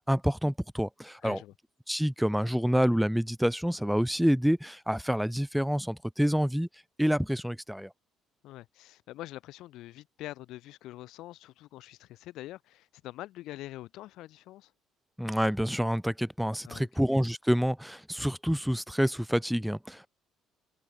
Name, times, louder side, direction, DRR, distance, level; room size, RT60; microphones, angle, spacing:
voice 1, 0.1-1.4 1.9-6.7 7.0-7.9 15.2-20.1, equal, ahead, 3.0 m, -27 dB
voice 2, 1.2-1.5 8.4-14.7 16.6-16.9, left 16 dB, 75° left, 4.3 m, -44 dB
cardioid pair, 105°, 0 cm